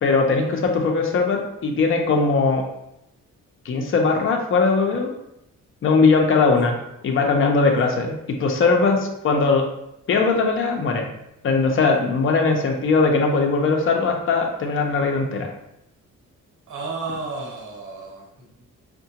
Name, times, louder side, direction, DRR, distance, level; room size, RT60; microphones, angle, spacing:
voice 1, 0.0-2.6 3.6-5.1 5.8-6.8 7.0-9.6 10.1-11.1 11.4-15.5, left 4 dB, 45° left, 2 dB, 0.5 m, -20 dB
voice 2, 16.7-18.6, right 3 dB, 75° right, -1 dB, 1.0 m, -33 dB
4.6 x 2.2 x 2.8 m, 0.83 s
wide cardioid pair, 145°, 30 cm